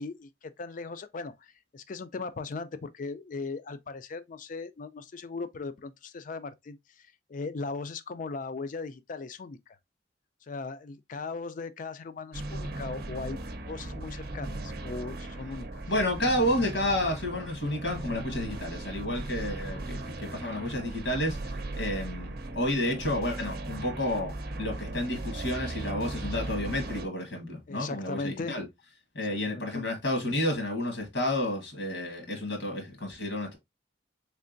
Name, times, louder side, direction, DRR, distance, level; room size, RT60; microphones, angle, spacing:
voice 1, 0.0-9.6 10.5-13.4 13.7-15.8 27.7-28.6 29.2-29.9, left 4 dB, 45° left, 0.4 m, -38 dB
sound 1, 12.3-27.1, right 2 dB, 55° right, 0.6 m, -37 dB
voice 2, 15.9-24.3 24.6-28.6 29.1-33.6, left 1 dB, 80° left, 1.5 m, -30 dB
3.7 x 3.3 x 2.5 m
head